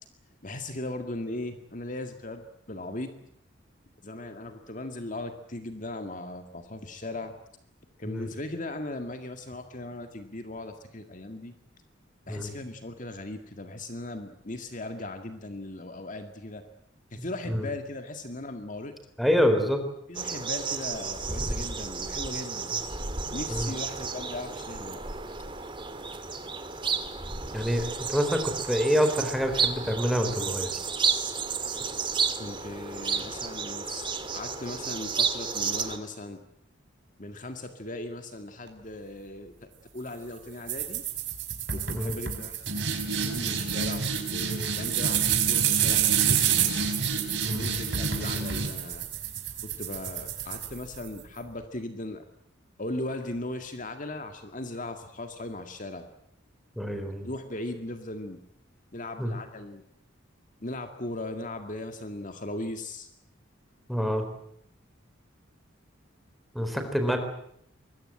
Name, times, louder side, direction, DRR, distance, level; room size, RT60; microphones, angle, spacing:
voice 1, 0.4-3.1 4.0-7.3 8.0-11.6 12.3-16.6 17.1-18.9 20.1-22.7 23.3-25.0 32.4-36.4 37.2-41.0 41.7-42.7 43.3-44.0 44.3-46.7 47.5-49.1 49.6-52.2 52.8-56.1 57.2-58.4 58.9-59.8 60.6-63.1 67.1-67.2, left 2 dB, 40° left, 7 dB, 1.9 m, -38 dB
voice 2, 17.2-17.7 19.2-19.8 23.5-23.7 27.5-30.7 41.9-42.2 47.4-47.8 56.8-57.3 59.2-59.3 63.9-64.3 66.5-67.2, equal, ahead, 6 dB, 4.0 m, -27 dB
sound 1, 20.1-36.0, right 5 dB, 25° right, 2.2 m, -32 dB
sound 2, 40.7-51.2, right 7 dB, 60° right, 4.8 m, -28 dB
25.0 x 22.0 x 8.9 m, 0.71 s
head